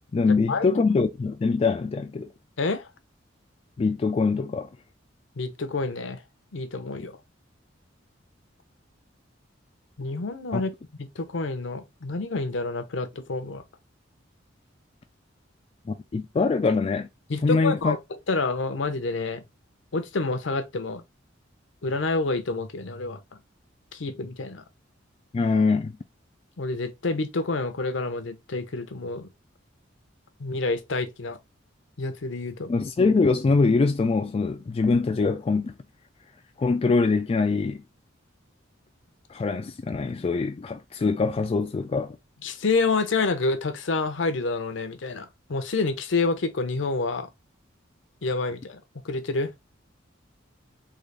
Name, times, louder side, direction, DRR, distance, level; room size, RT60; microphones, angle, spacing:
voice 1, 0.0-2.3 3.8-4.7 10.5-10.6 15.9-17.1 17.4-18.0 25.3-25.9 32.7-35.7 36.6-37.8 39.3-42.2, left 4 dB, 30° left, 0.3 m, -23 dB
voice 2, 2.6-2.9 5.4-6.2 6.5-7.2 10.0-10.7 11.0-13.6 17.3-18.0 18.3-19.4 19.9-21.0 21.8-23.2 23.9-24.6 26.6-29.3 30.4-31.4 32.0-32.7 42.4-47.3 48.2-49.5, left 3 dB, 70° left, 0.7 m, -28 dB
3.8 x 2.4 x 3.3 m
head